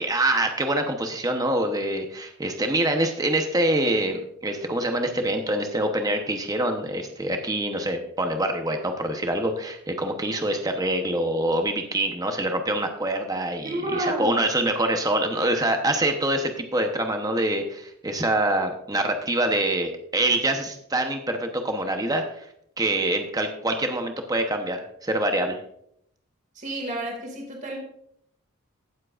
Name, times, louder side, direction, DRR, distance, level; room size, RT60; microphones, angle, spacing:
voice 1, 0.0-22.5 22.8-25.6, right 1 dB, 15° right, 5 dB, 0.9 m, -25 dB
voice 2, 13.6-14.4 26.5-27.8, right 1 dB, 35° right, 1 dB, 2.3 m, -30 dB
16.5 x 7.5 x 2.5 m, 0.71 s
head